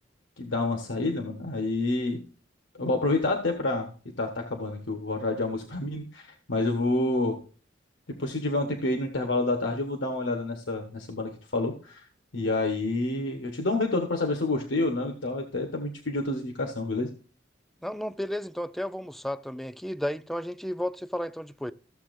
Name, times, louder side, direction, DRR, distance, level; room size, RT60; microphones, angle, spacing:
voice 1, 0.4-2.2 2.8-3.9 4.2-7.4 8.2-12.0 12.3-17.1, left 2 dB, 85° left, 1.2 m, -28 dB
voice 2, 17.8-21.7, equal, ahead, 0.4 m, -33 dB
14.0 x 7.0 x 2.6 m
head